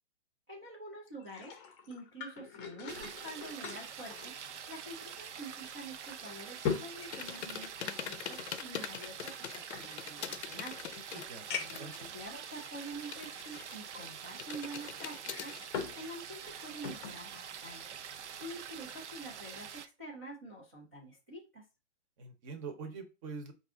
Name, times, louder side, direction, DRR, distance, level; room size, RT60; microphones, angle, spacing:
voice 1, 0.5-10.7 11.5-17.8 18.1-21.7, right 2 dB, 10° right, -6 dB, 0.3 m, -47 dB
sound 1, 1.1-5.1 5.4-5.5 6.1-8.1 9.0-10.4 10.9-11.0 11.5-11.9 12.7-12.8 15.1-16.0 16.3-17.2 17.6-17.8, left 6 dB, 20° left, 0.6 m, -41 dB
sound 2, 2.9-19.9, right 8 dB, 70° right, 0.6 m, -46 dB
sound 3, 7.1-12.1 12.4-14.0 14.4-15.6, left 9 dB, 65° left, 0.6 m, -43 dB
voice 2, 11.1-11.9 22.2-23.5, right 4 dB, 30° right, 6 dB, 0.8 m, -44 dB
4.6 x 2.5 x 3.6 m, 0.28 s
hypercardioid pair, 150°, 36 cm